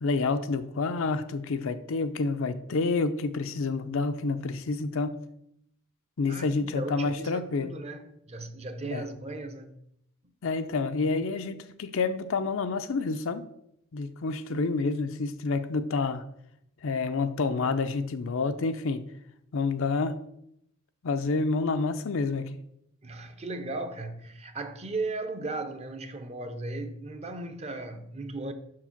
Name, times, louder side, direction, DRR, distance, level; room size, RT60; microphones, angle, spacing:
voice 1, 0.0-5.2 6.2-7.7 8.8-9.0 10.4-13.5 13.9-16.2 16.8-19.0 19.5-20.2 21.0-22.6, left 3 dB, 70° left, 0.5 m, -28 dB
voice 2, 6.3-9.7 23.0-28.5, right 2 dB, 30° right, 0.7 m, -36 dB
5.9 x 4.8 x 5.8 m
head